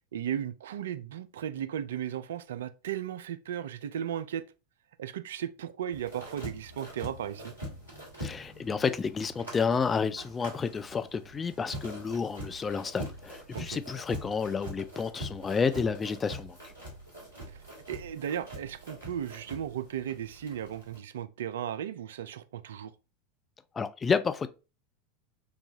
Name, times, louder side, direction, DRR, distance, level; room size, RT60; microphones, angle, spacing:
voice 1, 0.1-4.4 5.0-7.5 13.5-13.8 17.5-17.6 17.9-22.9, right 9 dB, 65° right, 0.3 m, -36 dB
sound 1, 5.9-21.0, equal, 85° left, 2.0 m, -44 dB
voice 2, 8.2-16.7 23.7-24.5, left 5 dB, 20° left, 0.3 m, -30 dB
3.9 x 2.3 x 2.8 m
figure-of-eight pair, 80°, 0 cm